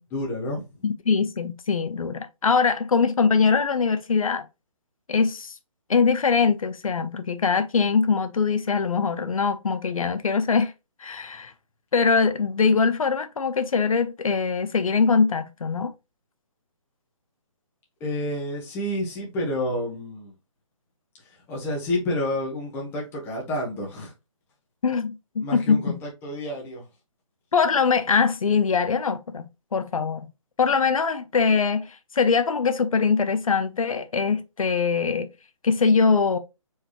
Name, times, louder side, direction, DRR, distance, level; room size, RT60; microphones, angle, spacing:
voice 1, 0.1-0.7 18.0-20.3 21.5-24.1 25.4-26.8, left 1 dB, 15° left, 1.2 m, -29 dB
voice 2, 0.8-4.5 5.1-5.5 5.9-10.7 11.0-11.5 11.9-15.9 24.8-26.0 27.5-30.3 30.6-35.3 35.6-36.4, left 5 dB, 90° left, 0.8 m, -22 dB
4.8 x 3.2 x 3.0 m
hypercardioid pair, 160°, 17 cm